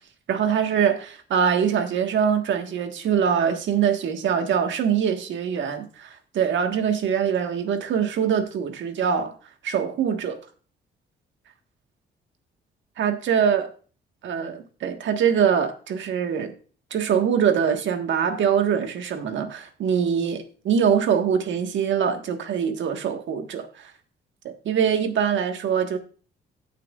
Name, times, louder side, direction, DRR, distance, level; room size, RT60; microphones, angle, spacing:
voice 1, 0.3-9.3 9.6-10.4 13.0-13.7 14.2-16.5 16.9-23.9 24.6-26.0, right 7 dB, 70° right, 1.5 m, -23 dB
17.0 x 5.9 x 2.4 m
cardioid pair, 90°, 20 cm